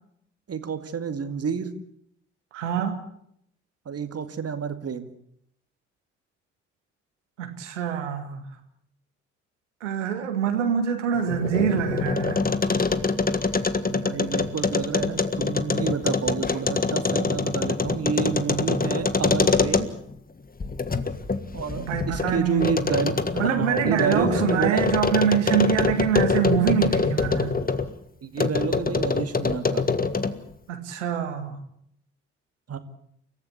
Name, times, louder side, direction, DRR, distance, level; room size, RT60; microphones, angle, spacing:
voice 1, 0.5-1.7 3.9-5.1 13.9-19.9 21.5-24.9 25.6-26.0 28.2-29.8 32.7-32.8, right 6 dB, 40° right, 2.3 m, -29 dB
voice 2, 2.5-3.0 7.4-8.5 9.8-12.4 21.8-22.8 23.4-27.6 30.7-31.6, right 8 dB, 80° right, 2.1 m, -25 dB
sound 1, 11.2-20.1 20.6-27.9 28.4-30.5, left 4 dB, 25° left, 1.8 m, -25 dB
30.0 x 14.5 x 8.4 m
figure-of-eight pair, 45°, 35 cm